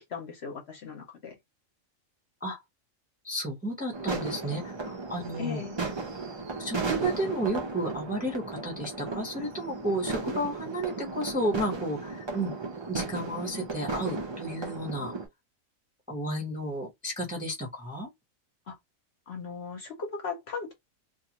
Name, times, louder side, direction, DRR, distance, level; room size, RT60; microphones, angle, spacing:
voice 1, 0.0-1.3 5.4-5.8 18.7-18.8 19.3-20.7, left 5 dB, 55° left, 0.9 m, -37 dB
voice 2, 3.2-5.6 6.6-12.5 12.9-15.1 16.1-18.1, right 1 dB, 10° right, 0.6 m, -32 dB
sound 1, 3.9-15.3, right 3 dB, 45° right, 0.3 m, -35 dB
2.5 x 2.3 x 2.8 m
omnidirectional pair, 1.4 m